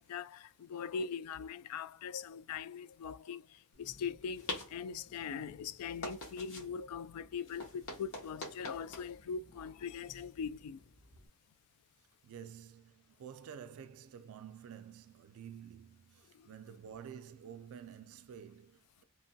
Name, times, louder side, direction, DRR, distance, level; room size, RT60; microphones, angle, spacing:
voice 1, 0.0-10.8 16.3-16.5, left 6 dB, 75° left, 0.3 m, -41 dB
sound 1, 3.7-11.3, left 2 dB, 60° left, 1.0 m, -48 dB
voice 2, 12.2-19.0, right 8 dB, 65° right, 0.3 m, -50 dB
2.9 x 2.2 x 2.6 m
head